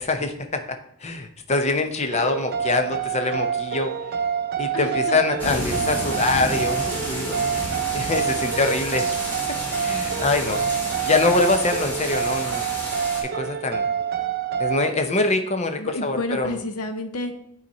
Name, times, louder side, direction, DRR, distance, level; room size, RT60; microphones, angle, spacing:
voice 1, 0.0-3.9 4.6-7.5 7.9-9.1 9.8-10.6 11.0-12.7 13.3-13.9 14.6-16.6, left 3 dB, 30° left, 6 dB, 0.7 m, -24 dB
sound 1, 2.1-14.9, right 7 dB, 45° right, 0.4 m, -27 dB
voice 2, 4.7-5.2 15.8-17.4, left 2 dB, 85° left, 7 dB, 0.9 m, -30 dB
sound 2, 5.4-13.2, equal, 10° left, 1.8 m, -31 dB
9.2 x 4.1 x 4.1 m, 0.74 s
head